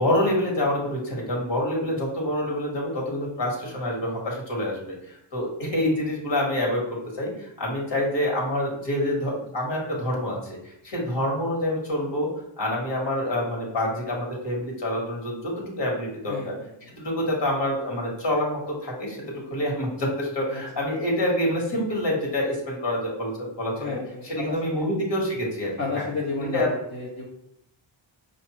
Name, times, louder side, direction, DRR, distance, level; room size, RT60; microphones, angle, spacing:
voice 1, 0.0-12.3 12.6-16.5 16.8-26.1 26.5-26.7, left 1 dB, 60° left, -2 dB, 1.6 m, -27 dB
voice 2, 23.8-24.8 25.8-27.3, left 3 dB, 35° left, -4 dB, 0.8 m, -31 dB
5.2 x 2.6 x 3.0 m, 0.77 s
cardioid pair, 75°, 47 cm